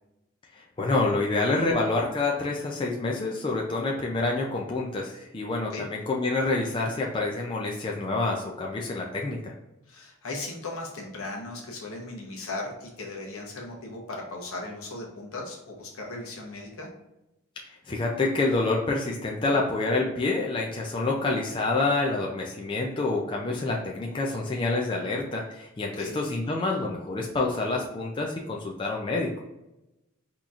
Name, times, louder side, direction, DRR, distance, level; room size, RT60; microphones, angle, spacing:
voice 1, 0.5-9.5 17.6-29.3, left 3 dB, 25° left, -1 dB, 0.3 m, -27 dB
voice 2, 9.9-16.9 26.0-26.2, left 2 dB, 70° left, -1 dB, 0.9 m, -37 dB
3.9 x 2.9 x 2.4 m, 0.91 s
head